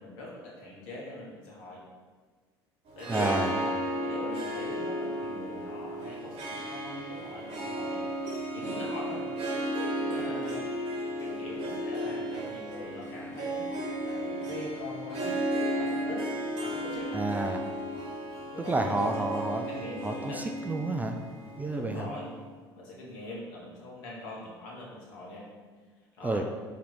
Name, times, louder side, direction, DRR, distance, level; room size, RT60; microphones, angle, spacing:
voice 1, 0.0-1.8 3.0-3.6 4.0-9.3 9.9-10.7 11.2-13.7 14.0-15.4 15.7-16.2 16.6-17.1 18.5-20.4 21.7-22.4 22.8-25.5 26.2-26.4, left 1 dB, 60° left, -4 dB, 1.3 m, -42 dB
Harp, 2.9-22.2, right 1 dB, 50° right, 1.1 m, -34 dB
voice 2, 3.1-3.5 17.1-17.6 18.7-19.6 20.0-21.2 21.6-22.1 26.2-26.4, right 2 dB, 15° right, 4 dB, 0.3 m, -30 dB
4.1 x 3.0 x 4.2 m, 1.5 s
figure-of-eight pair, 60°, 13 cm